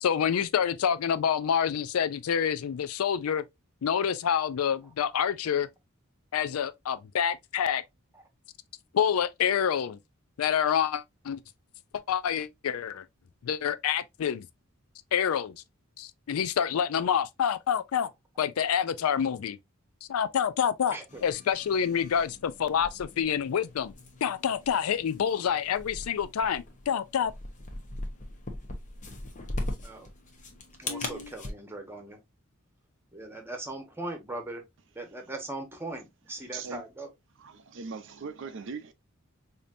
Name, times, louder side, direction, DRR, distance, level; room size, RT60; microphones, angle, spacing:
voice 1, 0.0-3.4 3.8-5.7 6.3-7.8 8.9-10.0 10.4-11.4 12.1-13.0 13.4-14.5 15.1-15.6 16.0-18.1 18.4-19.6 20.1-23.9 24.2-27.3, left 8 dB, 90° left, 0.4 m, -27 dB
voice 2, 20.9-21.2 29.8-30.1 30.8-32.2 33.1-34.6 34.9-37.1, right 2 dB, 10° right, 1.0 m, -39 dB
sound 1, 21.1-31.5, left 2 dB, 35° left, 0.9 m, -40 dB
voice 3, 37.4-38.9, right 5 dB, 60° right, 0.5 m, -39 dB
5.1 x 2.8 x 2.5 m
head